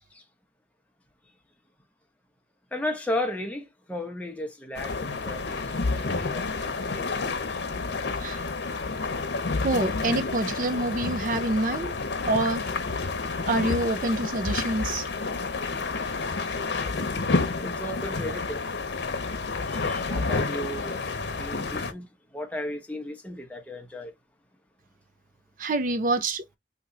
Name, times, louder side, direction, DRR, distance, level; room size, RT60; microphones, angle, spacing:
voice 1, 2.7-7.1 7.5-7.6 17.6-18.6 19.7-21.0 21.4-22.1 22.3-24.1, left 1 dB, 10° left, 0.8 m, -35 dB
sound 1, 4.7-21.9, left 3 dB, 90° left, 0.8 m, -30 dB
voice 2, 9.6-12.7 13.4-15.1 25.6-26.4, right 2 dB, 50° right, 0.5 m, -27 dB
3.0 x 2.8 x 3.8 m
head